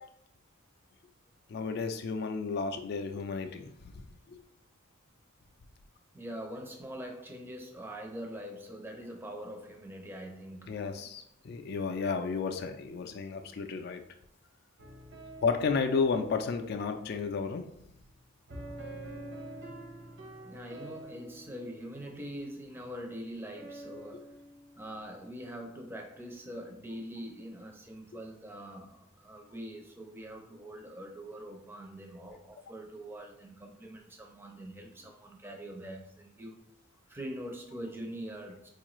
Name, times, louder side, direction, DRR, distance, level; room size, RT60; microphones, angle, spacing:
voice 1, 1.5-3.9 4.3-4.4 10.7-14.0 15.4-17.7, left 5 dB, 50° left, 0.3 m, -32 dB
voice 2, 6.1-10.8 20.4-24.3 24.8-36.6 37.1-38.7, equal, 10° right, 0.5 m, -43 dB
sound 1, 14.8-25.6, right 1 dB, 55° right, 0.7 m, -48 dB
4.4 x 2.4 x 3.0 m
head